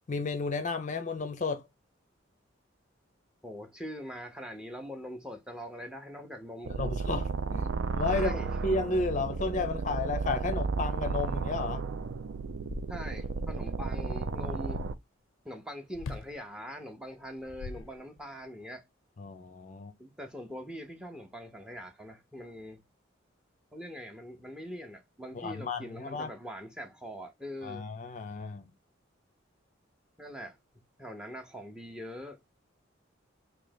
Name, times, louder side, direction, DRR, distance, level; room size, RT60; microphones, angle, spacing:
voice 1, 0.1-1.6 6.7-8.4 8.6-11.8 19.2-19.9 25.3-26.3 27.6-28.6, left 3 dB, 40° left, 0.5 m, -32 dB
voice 2, 3.4-6.8 8.1-8.5 12.9-14.8 15.4-18.8 20.0-22.8 23.7-27.8 30.2-30.6 31.0-32.4, equal, 5° right, 0.6 m, -42 dB
sound 1, 6.6-14.9, right 4 dB, 70° right, 0.4 m, -33 dB
sound 2, 11.4-11.5 11.9-13.4 15.9-16.4 17.2-18.4, left 3 dB, 90° left, 0.4 m, -43 dB
3.2 x 2.8 x 3.9 m
head